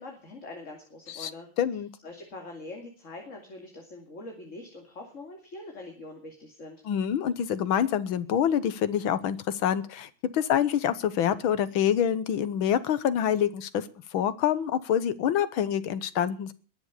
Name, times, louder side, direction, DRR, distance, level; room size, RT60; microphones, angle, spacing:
voice 1, 0.0-1.5 2.0-6.8, left 2 dB, 35° left, 2 dB, 3.0 m, -43 dB
voice 2, 1.6-1.9 6.9-13.9 14.1-16.5, left 9 dB, 80° left, 13 dB, 1.9 m, -26 dB
21.0 x 7.5 x 8.3 m, 0.38 s
omnidirectional pair, 2.2 m